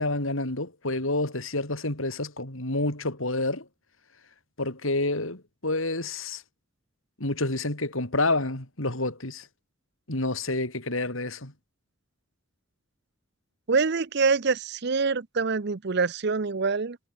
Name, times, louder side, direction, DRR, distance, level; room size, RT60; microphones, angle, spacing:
voice 1, 0.0-3.7 4.6-6.4 7.2-9.5 10.1-11.5, left 2 dB, 70° left, 4.3 m, -28 dB
voice 2, 13.7-17.0, right 4 dB, 50° right, 0.7 m, -25 dB
head